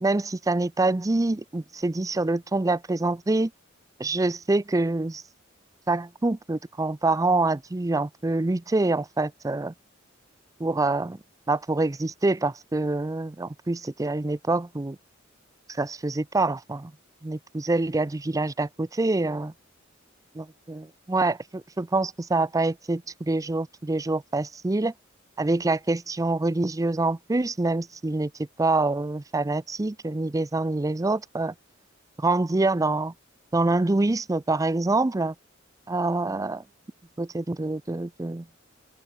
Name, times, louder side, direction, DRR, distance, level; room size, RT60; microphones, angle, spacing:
voice 1, 0.0-3.5 4.0-5.2 5.9-9.7 10.6-11.2 11.5-15.0 15.7-16.9 17.2-19.5 20.4-24.9 25.4-31.5 32.2-33.1 33.5-35.3 35.9-36.6 37.2-38.5, right 2 dB, 15° right, 0.5 m, -26 dB
head